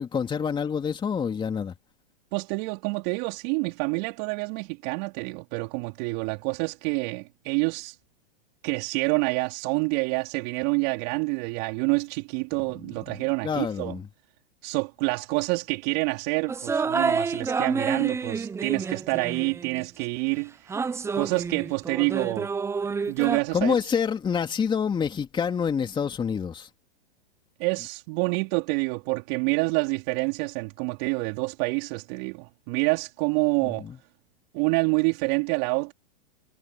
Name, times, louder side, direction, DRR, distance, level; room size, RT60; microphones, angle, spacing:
voice 1, 0.0-1.7 13.1-14.1 23.5-26.7 33.6-34.0, left 6 dB, 15° left, 3.0 m, -27 dB
voice 2, 2.3-8.0 8.6-14.0 14.6-20.8 21.1-22.5 23.1-23.7 27.6-33.9 34.5-35.9, right 32 dB, 45° right, 4.3 m, -27 dB
sound 1, 16.5-19.9 20.7-23.4, right 5 dB, 10° right, 0.7 m, -29 dB
hypercardioid pair, 130°, 30 cm